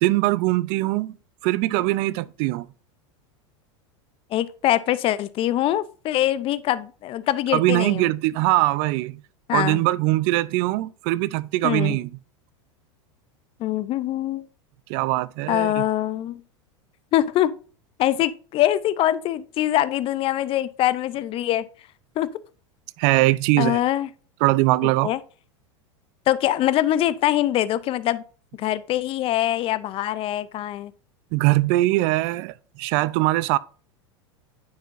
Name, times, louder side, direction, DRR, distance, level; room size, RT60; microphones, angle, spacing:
voice 1, 0.0-1.2 1.4-2.7 7.5-9.2 9.5-12.1 14.9-15.8 23.0-23.8 24.4-25.1 31.3-33.6, right 19 dB, 55° right, 0.4 m, -21 dB
voice 2, 4.3-8.1 9.5-9.8 11.6-12.0 13.6-14.5 15.5-16.4 17.1-17.5 18.0-21.7 22.2-22.3 23.6-24.1 25.0-25.2 26.3-28.2 28.6-30.9, left 13 dB, 35° left, 0.4 m, -23 dB
9.3 x 4.4 x 2.5 m
hypercardioid pair, 115°, 16 cm